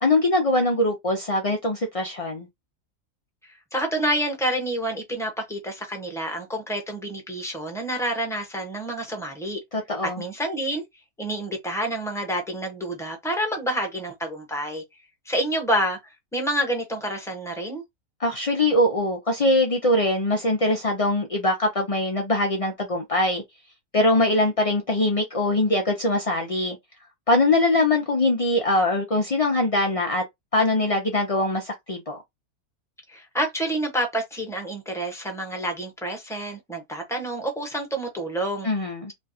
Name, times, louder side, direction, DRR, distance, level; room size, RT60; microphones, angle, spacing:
voice 1, 0.0-2.5 9.7-10.2 18.2-23.4 23.9-26.8 27.3-30.2 30.5-32.2 38.6-39.1, left 2 dB, 50° left, 0.4 m, -22 dB
voice 2, 3.7-9.6 10.2-10.8 11.2-14.8 15.3-17.8 33.1-38.7, right 1 dB, ahead, 0.9 m, -28 dB
3.2 x 2.3 x 4.1 m
omnidirectional pair, 1.6 m